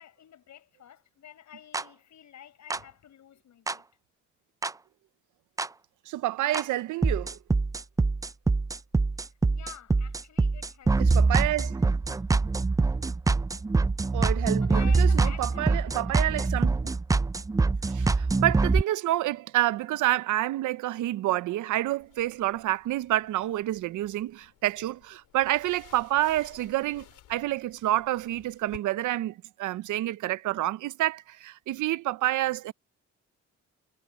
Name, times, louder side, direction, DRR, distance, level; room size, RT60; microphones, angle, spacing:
voice 1, 0.0-3.8 9.5-11.3 14.6-16.1, left 9 dB, 65° left, 6.5 m, -49 dB
sound 1, 1.7-1.8 2.7-2.8 3.7-3.8 4.6-4.7 5.6-5.7 6.5-6.6 7.0-18.8, right 3 dB, 10° right, 0.4 m, -24 dB
voice 2, 6.1-7.4 11.0-11.8 12.1-12.2 14.1-16.9 17.9-32.7, right 15 dB, 80° right, 0.8 m, -28 dB
sound 2, 22.0-28.8, left 13 dB, 85° left, 3.3 m, -55 dB
cardioid pair, 90°, 30 cm